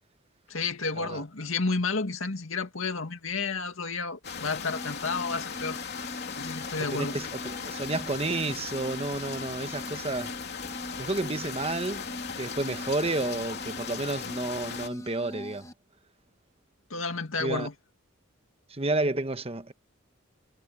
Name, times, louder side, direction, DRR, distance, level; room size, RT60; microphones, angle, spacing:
voice 1, 0.5-5.8 6.3-7.2 16.9-17.7, left 4 dB, 80° left, 2.2 m, -31 dB
sound 1, 4.2-14.9, left 6 dB, 55° left, 3.1 m, -38 dB
sound 2, 4.7-15.7, equal, 15° left, 0.9 m, -43 dB
voice 2, 6.9-10.3 11.0-12.0 12.4-15.7 17.4-17.7 18.7-19.7, right 2 dB, 30° right, 1.1 m, -31 dB
sound 3, 7.2-14.3, equal, ahead, 8.0 m, -60 dB
head